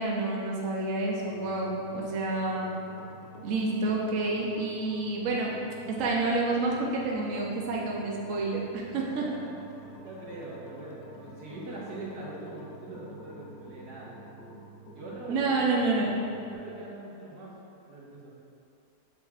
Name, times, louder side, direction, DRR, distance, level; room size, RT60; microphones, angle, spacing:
voice 1, 0.0-2.7 3.4-5.6 5.9-9.2 15.3-16.2, right 2 dB, 60° right, -3 dB, 1.1 m, -29 dB
sound 1, 1.2-16.5, right 1 dB, 90° left, 1.5 m, -49 dB
voice 2, 9.0-9.5 9.7-14.3 14.9-15.7 16.5-17.6 17.9-18.3, right 2 dB, 85° right, -6 dB, 1.9 m, -42 dB
7.7 x 7.2 x 2.4 m, 2.6 s
omnidirectional pair, 1.6 m